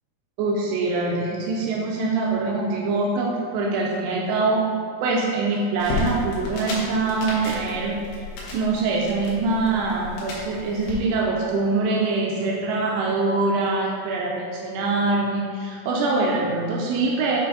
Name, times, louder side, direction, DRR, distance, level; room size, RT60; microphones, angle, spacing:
voice 1, 0.4-4.6 5.0-8.0 8.5-17.4, right 3 dB, 85° right, -2 dB, 2.6 m, -24 dB
sound 1, 5.8-10.9, left 2 dB, 85° left, 3.4 m, -33 dB
9.2 x 3.3 x 3.9 m, 2.3 s
omnidirectional pair, 4.8 m